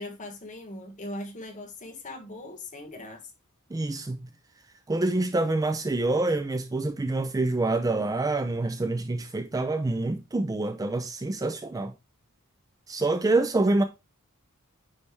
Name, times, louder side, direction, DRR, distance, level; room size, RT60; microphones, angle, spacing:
voice 1, 0.0-3.3, left 1 dB, 35° left, 1.5 m, -40 dB
voice 2, 3.7-4.3 4.9-11.9 12.9-13.8, right 2 dB, 15° right, 0.4 m, -26 dB
9.5 x 3.3 x 3.3 m
head